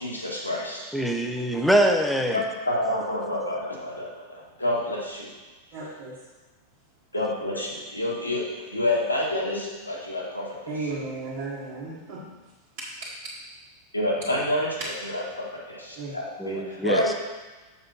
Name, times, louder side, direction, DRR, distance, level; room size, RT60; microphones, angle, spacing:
voice 1, 0.0-0.8 2.3-5.3 7.1-8.4 8.7-10.5 13.9-17.1, left 1 dB, 85° left, 1.9 m, -28 dB
voice 2, 0.9-2.4 16.4-17.1, equal, ahead, 0.8 m, -23 dB
voice 3, 5.7-6.2 10.6-12.3 12.8-13.4 14.8-14.9 15.9-16.1, right 3 dB, 50° right, 1.8 m, -35 dB
7.1 x 6.5 x 4.1 m
figure-of-eight pair, 90°, 0 cm